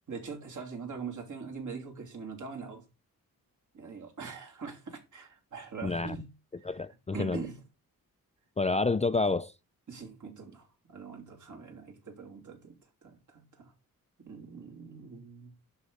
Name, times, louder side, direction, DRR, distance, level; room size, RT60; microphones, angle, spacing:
voice 1, 0.1-2.8 3.7-6.3 7.1-7.6 9.9-13.7 14.2-15.5, right 5 dB, 55° right, 3.2 m, -43 dB
voice 2, 5.8-6.2 6.6-7.4 8.6-9.5, left 3 dB, 20° left, 0.5 m, -28 dB
11.0 x 4.1 x 6.5 m
cardioid pair, 95°, 36 cm